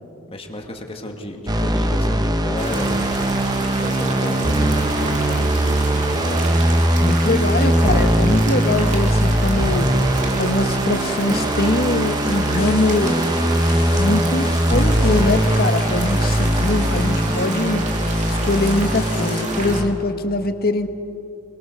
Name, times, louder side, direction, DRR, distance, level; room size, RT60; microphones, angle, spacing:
voice 1, 0.3-3.0 3.8-6.4, left 1 dB, 25° left, 3 dB, 2.1 m, -32 dB
sound 1, 1.5-19.9, right 1 dB, 20° right, 1.1 m, -20 dB
sound 2, 2.6-19.8, right 3 dB, 35° right, 2.9 m, -31 dB
voice 2, 7.0-9.9 10.4-13.5 14.0-17.9 18.3-20.9, left 2 dB, 45° left, 7 dB, 1.5 m, -22 dB
sound 3, 12.6-19.4, left 7 dB, 90° left, 1.3 m, -38 dB
27.5 x 22.5 x 6.8 m, 2.7 s
head